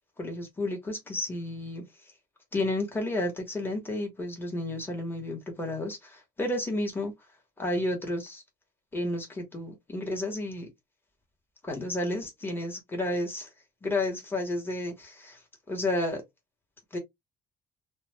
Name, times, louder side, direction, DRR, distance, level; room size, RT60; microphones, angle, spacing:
voice 1, 0.2-2.1 2.5-7.1 7.6-8.4 8.9-10.7 11.6-13.5 13.8-16.2 16.9-17.0, left 1 dB, 10° left, 1.1 m, -32 dB
2.4 x 2.1 x 3.2 m
cardioid pair, 110°, 17 cm